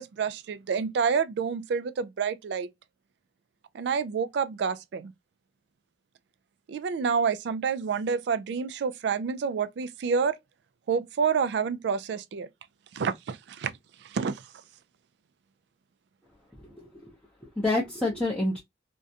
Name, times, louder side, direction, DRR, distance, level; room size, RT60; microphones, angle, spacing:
voice 1, 0.0-2.7 3.7-5.1 6.7-10.4 10.9-12.5 12.9-13.7 14.0-14.4, right 6 dB, 65° right, 0.3 m, -28 dB
voice 2, 16.5-17.1 17.4-18.6, left 2 dB, 5° left, 0.6 m, -29 dB
2.4 x 2.1 x 2.6 m
head